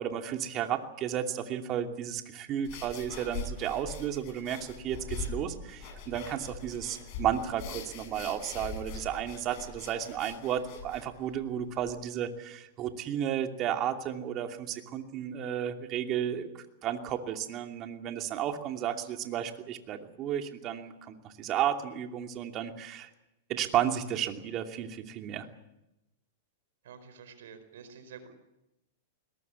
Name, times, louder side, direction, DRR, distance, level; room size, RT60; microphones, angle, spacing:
voice 1, 0.0-23.1 23.5-25.5, right 10 dB, 40° right, 5 dB, 2.7 m, -33 dB
sound 1, 2.6-11.9, left 4 dB, 50° left, 7.0 m, -42 dB
voice 2, 26.8-28.3, right 6 dB, 70° right, 10 dB, 4.9 m, -49 dB
21.5 x 20.0 x 8.4 m, 0.91 s
hypercardioid pair, 110°, 0 cm